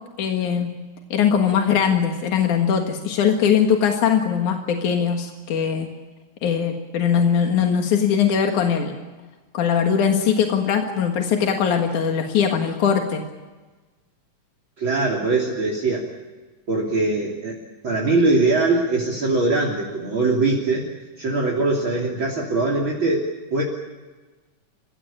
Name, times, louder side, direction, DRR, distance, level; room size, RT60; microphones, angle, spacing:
voice 1, 0.2-0.7 1.1-5.9 6.4-9.0 9.5-13.2, left 7 dB, 85° left, 3 dB, 3.2 m, -20 dB
voice 2, 14.8-16.1 16.7-17.6 17.8-20.9 21.2-23.6, right 3 dB, 40° right, 0 dB, 3.7 m, -22 dB
30.0 x 16.5 x 8.7 m, 1.3 s
omnidirectional pair, 3.4 m